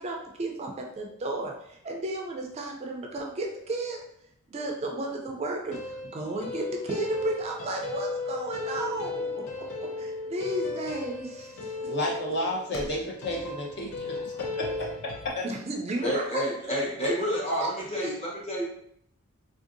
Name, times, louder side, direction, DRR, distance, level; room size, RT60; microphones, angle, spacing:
voice 1, 0.0-4.0 4.5-11.9 15.4-16.4 17.0-17.1 17.5-17.7 18.0-18.2, right 2 dB, 30° right, 1 dB, 0.4 m, -33 dB
sound 1, 5.7-15.3, left 3 dB, 90° left, 0.5 m, -35 dB
voice 2, 11.8-14.9 15.2-15.5, left 1 dB, 55° left, -2 dB, 0.8 m, -32 dB
voice 3, 16.0-18.6, equal, 30° left, -4 dB, 1.1 m, -29 dB
3.6 x 2.6 x 2.5 m, 0.71 s
head